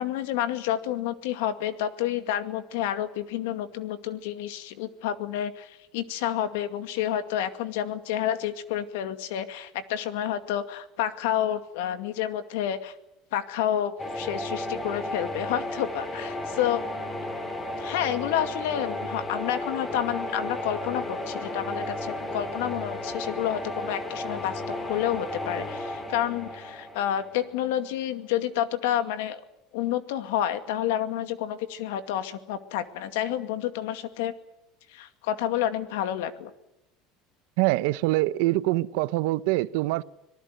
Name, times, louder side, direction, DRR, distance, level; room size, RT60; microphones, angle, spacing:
voice 1, 0.0-12.9 13.3-16.8 17.8-29.4 29.7-34.3 34.9-36.5, left 11 dB, 85° left, 2.2 m, -29 dB
sound 1, 14.0-27.8, left 1 dB, 20° left, 4.7 m, -34 dB
voice 2, 37.6-40.0, right 19 dB, 75° right, 0.9 m, -24 dB
25.5 x 19.0 x 9.2 m
cardioid pair, 140°, 0 cm